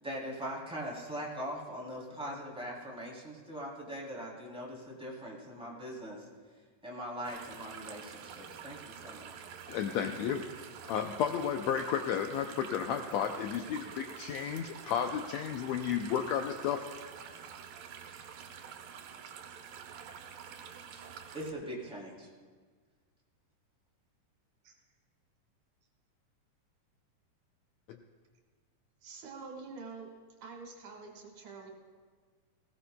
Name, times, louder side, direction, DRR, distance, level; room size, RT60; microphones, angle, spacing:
voice 1, 0.0-6.3 6.8-9.3 20.9-21.0 21.3-22.3, equal, ahead, -5 dB, 2.6 m, -41 dB
sound 1, 7.2-21.5, right 7 dB, 85° right, 2.5 m, -48 dB
voice 2, 9.7-10.4 10.8-16.8 27.9-28.0, left 8 dB, 90° left, 5 dB, 1.5 m, -32 dB
voice 3, 29.0-30.1 30.4-31.7, right 4 dB, 65° right, 0 dB, 3.0 m, -46 dB
19.0 x 17.0 x 2.3 m, 1.5 s
omnidirectional pair, 3.8 m